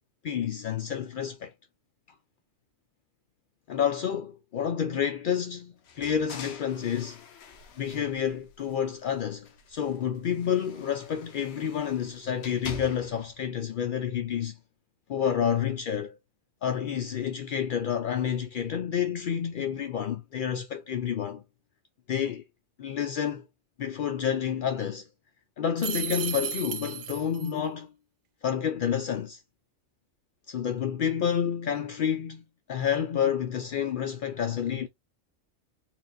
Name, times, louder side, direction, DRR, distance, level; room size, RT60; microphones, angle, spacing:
voice 1, 0.2-1.5 3.7-7.2 7.8-14.6 15.1-16.2 16.6-21.4 22.1-22.4 22.8-23.5 23.8-25.1 25.6-27.9 28.4-29.4 30.5-32.4 32.7-34.9, left 8 dB, 75° left, 0.4 m, -29 dB
sound 1, 5.8-9.0 9.4-13.3, left 5 dB, 60° left, 0.9 m, -46 dB
sound 2, 25.8-27.5, right 9 dB, 80° right, 1.0 m, -34 dB
4.4 x 2.4 x 2.6 m
omnidirectional pair, 1.4 m